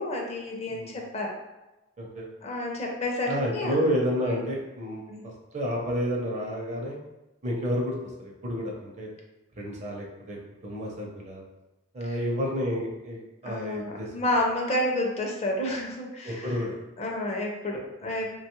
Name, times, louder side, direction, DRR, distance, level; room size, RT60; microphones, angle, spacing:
voice 1, 0.0-1.3 2.4-3.8 4.2-4.4 5.1-5.3 12.1-12.2 13.4-16.5 17.0-18.3, left 1 dB, 35° left, 0 dB, 0.4 m, -30 dB
voice 2, 2.0-2.3 3.3-5.0 5.5-7.0 7.4-9.1 9.6-10.4 10.6-11.4 11.9-14.1 16.2-16.7 18.0-18.1, equal, 35° right, -1 dB, 0.6 m, -30 dB
2.8 x 2.3 x 3.0 m, 0.98 s
head